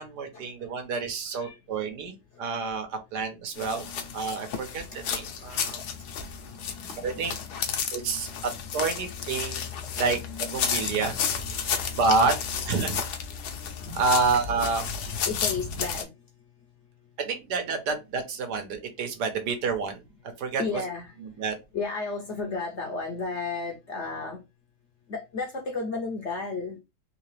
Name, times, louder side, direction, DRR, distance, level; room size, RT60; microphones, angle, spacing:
voice 1, 0.0-2.1 2.4-3.9 4.1-5.8 7.0-7.3 7.9-9.7 10.0-10.2 10.5-11.2 11.9-12.3 12.6-13.2 13.9-14.9 17.2-20.0 20.4-20.6 21.4-21.6, right 4 dB, 75° right, 1.5 m, -28 dB
sound 1, 3.6-16.0, left 7 dB, 75° left, 1.2 m, -32 dB
voice 2, 15.2-16.1 20.6-21.1 21.7-24.4 25.1-26.8, left 4 dB, 55° left, 0.8 m, -32 dB
3.7 x 2.9 x 3.2 m
omnidirectional pair, 1.8 m